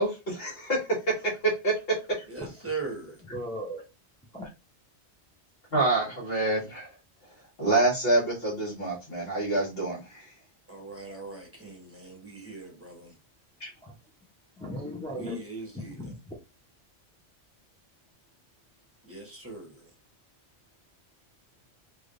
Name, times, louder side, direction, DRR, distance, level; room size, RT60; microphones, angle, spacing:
voice 1, 0.0-2.0 5.7-6.9 7.6-10.3 13.6-13.7, right 2 dB, 60° left, 1.5 m, -27 dB
voice 2, 2.3-3.1 10.7-13.1 15.2-15.9 19.1-19.7, right 3 dB, 15° right, 0.8 m, -39 dB
voice 3, 3.3-3.8 4.3-4.5 13.8-14.0 14.6-15.4 15.7-16.3, equal, 10° left, 0.4 m, -37 dB
3.3 x 2.6 x 2.5 m
omnidirectional pair, 1.2 m